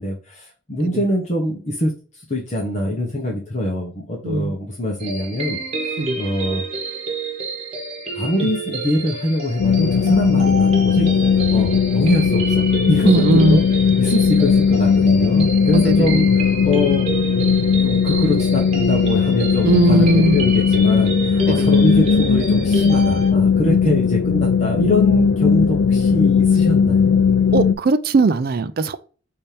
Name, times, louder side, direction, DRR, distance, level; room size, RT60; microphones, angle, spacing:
voice 1, 0.0-6.6 8.1-17.1 17.8-27.2, left 1 dB, 35° left, 1.0 m, -24 dB
voice 2, 4.2-4.6 6.0-6.2 8.4-8.5 10.3-10.4 13.1-13.6 15.7-16.2 19.6-20.4 21.5-21.7 23.9-24.0 27.5-28.9, right 2 dB, 50° right, 0.4 m, -18 dB
sound 1, 5.0-23.3, right 3 dB, 35° right, 1.2 m, -29 dB
sound 2, 9.6-27.7, left 6 dB, 75° left, 0.4 m, -17 dB
5.4 x 2.8 x 3.3 m
head